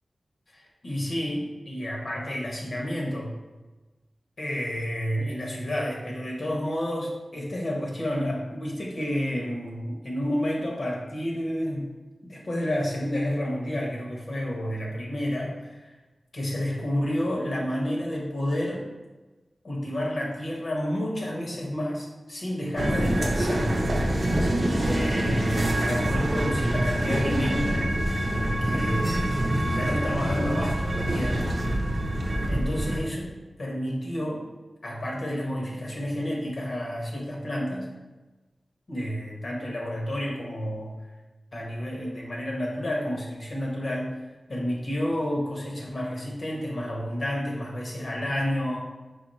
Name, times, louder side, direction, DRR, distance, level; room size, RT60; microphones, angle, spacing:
voice 1, 0.5-3.4 4.4-11.9 12.2-15.9 16.3-18.9 19.6-23.8 24.8-28.0 28.6-31.5 32.0-33.3 33.6-34.5 34.8-37.9 38.9-41.0 41.5-44.2 44.5-48.9, equal, 65° left, -2 dB, 1.1 m, -30 dB
sound 1, 22.8-33.0, right 1 dB, 65° right, 0.7 m, -25 dB
5.0 x 2.3 x 4.1 m, 1.2 s
cardioid pair, 45°, 0 cm